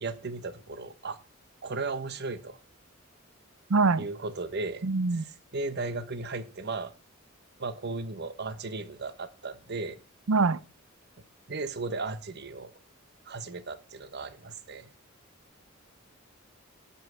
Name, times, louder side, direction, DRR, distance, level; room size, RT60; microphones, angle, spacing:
voice 1, 0.0-1.2 1.6-2.6 4.0-4.9 5.1-6.9 7.6-10.0 11.5-12.7 13.3-14.9, right 3 dB, 55° right, 1.1 m, -36 dB
voice 2, 3.7-4.1 4.8-5.2 10.3-10.6, right 4 dB, 75° right, 0.6 m, -23 dB
11.5 x 5.6 x 7.9 m
head